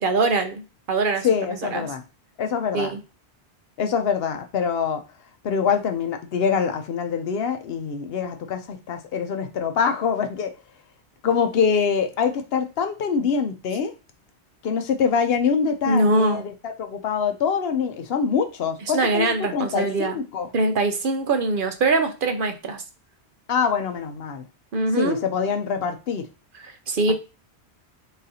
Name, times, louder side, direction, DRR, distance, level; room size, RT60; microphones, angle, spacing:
voice 1, 0.0-0.6 0.9-1.3 1.7-1.9 2.7-3.0 15.9-16.4 18.9-20.2 20.5-22.8 24.7-25.2 26.6-27.1, right 3 dB, 55° right, 0.7 m, -22 dB
voice 2, 1.2-2.0 2.4-3.0 3.8-5.0 5.4-10.5 11.2-13.9 14.6-20.5 23.5-24.5 24.9-26.3, left 6 dB, 65° left, 0.8 m, -24 dB
4.0 x 3.9 x 2.7 m
omnidirectional pair, 1.1 m